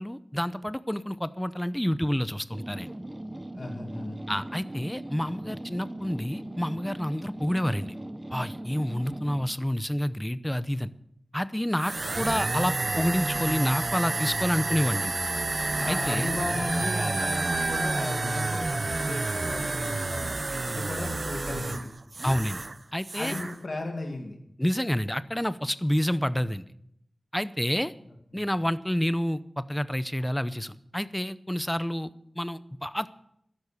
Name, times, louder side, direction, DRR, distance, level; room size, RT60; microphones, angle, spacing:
voice 1, 0.0-2.9 4.3-7.9 8.3-10.9 11.3-15.1 15.9-16.3 22.2-22.6 22.9-23.3 24.6-26.6 27.3-27.9 28.3-33.1, equal, 10° left, 15 dB, 0.7 m, -29 dB
sound 1, 2.5-9.6, right 1 dB, 25° right, 0.9 m, -39 dB
voice 2, 3.5-4.2 15.8-20.4 20.7-21.9 23.1-24.4 28.3-28.4, left 2 dB, 60° left, 2 dB, 2.3 m, -35 dB
sound 2, 11.8-22.8 23.0-23.5, right 3 dB, 50° right, 0.7 m, -29 dB
13.0 x 11.0 x 6.9 m, 0.74 s
wide cardioid pair, 75°, 0 cm